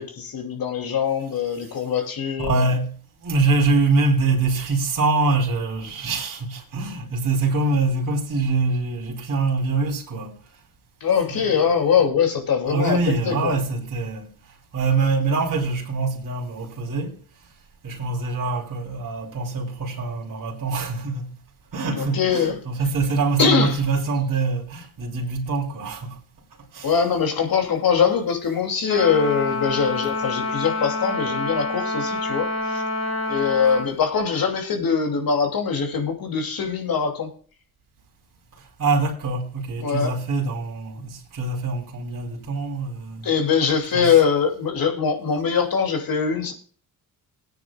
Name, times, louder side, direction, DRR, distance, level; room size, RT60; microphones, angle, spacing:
voice 1, 0.0-2.7 11.0-13.0 13.2-13.6 21.9-22.5 23.4-23.8 26.8-32.8 33.3-37.3 39.8-40.1 43.2-46.5, left 6 dB, 65° left, 2.8 m, -22 dB
voice 2, 2.4-2.9 3.2-10.4 11.3-11.5 12.7-14.3 14.7-17.2 17.8-21.3 21.7-26.2 26.7-26.9 38.8-43.3 43.9-44.1, right 3 dB, 55° right, 3.3 m, -24 dB
Trumpet, 28.9-33.9, left 2 dB, 45° left, 2.5 m, -27 dB
20.0 x 9.4 x 2.4 m
cardioid pair, 70°, 37 cm